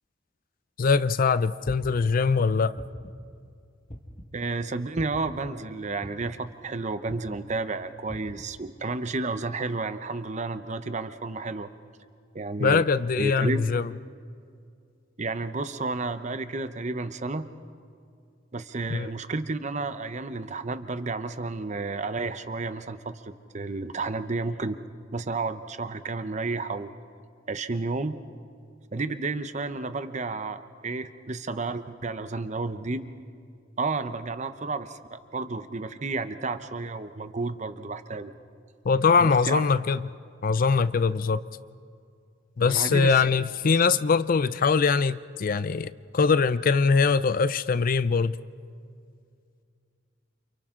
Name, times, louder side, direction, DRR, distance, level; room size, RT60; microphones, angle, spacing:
voice 1, 0.8-2.8 12.6-13.9 18.9-19.1 38.8-40.1 40.4-41.4 42.6-48.4, left 5 dB, 45° left, 15 dB, 0.5 m, -22 dB
sound 1, 1.7-2.1 2.8-3.2 3.9-4.3 5.0-5.3 6.0-6.4 7.1-7.4 8.1-8.4, equal, 30° left, 1.8 m, -41 dB
voice 2, 4.3-11.7 12.3-12.8 13.2-13.6 15.2-17.5 18.5-24.8 25.1-26.9 27.5-28.1 28.9-33.1 33.8-38.3 39.2-39.6 42.7-43.2, right 3 dB, 40° right, 11 dB, 0.8 m, -31 dB
29.5 x 28.0 x 3.8 m, 2.3 s
head